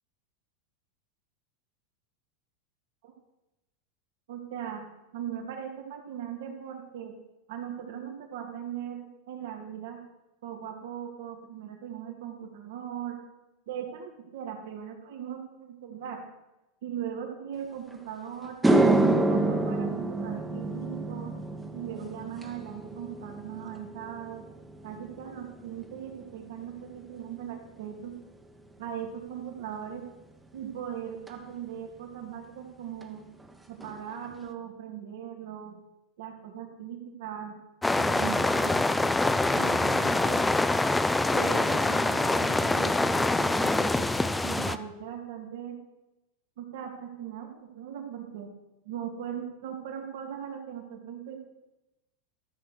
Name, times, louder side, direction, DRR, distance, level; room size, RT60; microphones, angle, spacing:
voice 1, 4.3-4.8 5.1-7.1 7.5-10.0 10.4-13.2 13.7-16.2 16.8-18.6 19.0-21.3 21.7-24.4 24.8-28.1 28.8-30.1 30.5-33.3 33.7-35.8 36.2-37.5 37.9-38.8 39.5-40.4 41.3-44.1 44.4-45.8 46.6-48.5 48.8-51.4, right 9 dB, 75° right, 3 dB, 2.5 m, -39 dB
sound 1, 17.9-18.0 18.4-26.9 27.2-27.7 31.3-31.4 33.0-33.1 33.4-33.5 33.8-34.3, right 2 dB, 10° right, 1.1 m, -28 dB
sound 2, 37.8-44.8, left 2 dB, 10° left, 0.5 m, -25 dB
13.0 x 6.7 x 6.4 m, 1.0 s
supercardioid pair, 125°, 0 cm